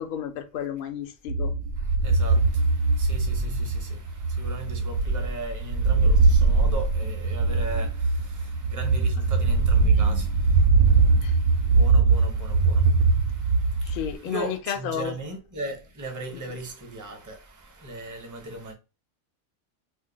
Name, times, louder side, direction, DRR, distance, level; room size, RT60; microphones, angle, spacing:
voice 1, 0.0-1.5 11.2-11.3 13.8-15.2 16.3-16.6, left 9 dB, 65° left, 0.5 m, -32 dB
sound 1, 1.3-14.1, right 4 dB, 75° right, 0.9 m, -21 dB
voice 2, 1.8-18.7, right 2 dB, 25° right, 0.4 m, -38 dB
2.6 x 2.1 x 3.8 m
omnidirectional pair, 1.4 m